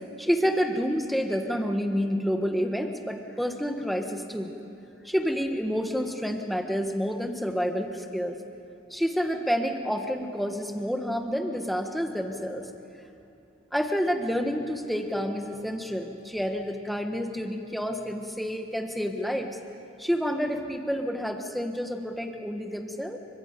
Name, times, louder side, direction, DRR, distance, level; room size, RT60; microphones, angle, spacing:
voice 1, 0.2-4.5 5.0-8.4 8.9-12.7 13.7-19.6 20.0-23.2, equal, ahead, 4 dB, 1.3 m, -29 dB
29.0 x 24.5 x 5.3 m, 2.8 s
head